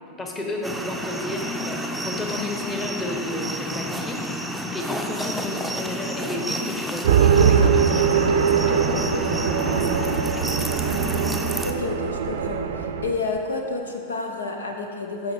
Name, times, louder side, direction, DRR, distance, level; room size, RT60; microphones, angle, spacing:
voice 1, 0.2-4.2 4.7-10.6, left 2 dB, 15° left, 1 dB, 1.1 m, -32 dB
sound 1, 0.6-11.7, equal, ahead, 0.6 m, -30 dB
sound 2, 7.0-13.1, right 7 dB, 60° right, 0.5 m, -21 dB
voice 2, 11.6-15.3, left 3 dB, 70° left, 3 dB, 0.7 m, -30 dB
14.5 x 5.4 x 3.6 m, 2.5 s
figure-of-eight pair, 90°, 0 cm